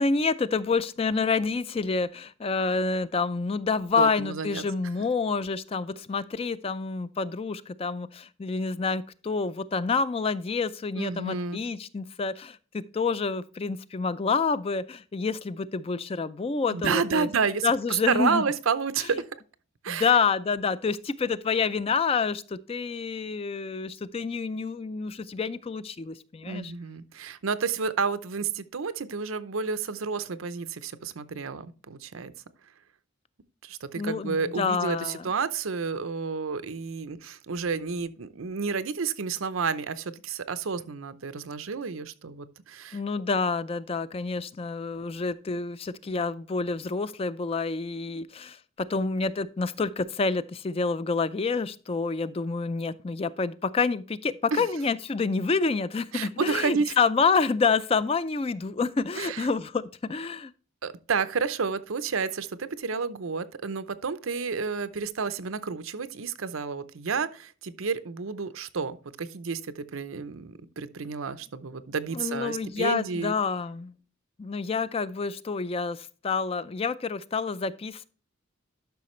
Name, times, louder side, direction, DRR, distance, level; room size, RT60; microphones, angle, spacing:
voice 1, 0.0-17.3 17.6-18.4 19.9-26.7 34.0-35.3 42.9-48.6 48.9-60.5 72.1-73.9 74.4-78.1, left 4 dB, 30° left, 0.4 m, -28 dB
voice 2, 4.0-4.6 11.0-11.6 16.7-17.7 18.1-19.2 19.8-20.1 26.5-32.3 33.6-43.0 54.5-54.6 56.1-56.9 59.2-59.5 60.8-73.3, right 5 dB, 80° right, 0.7 m, -30 dB
11.5 x 5.8 x 3.1 m
head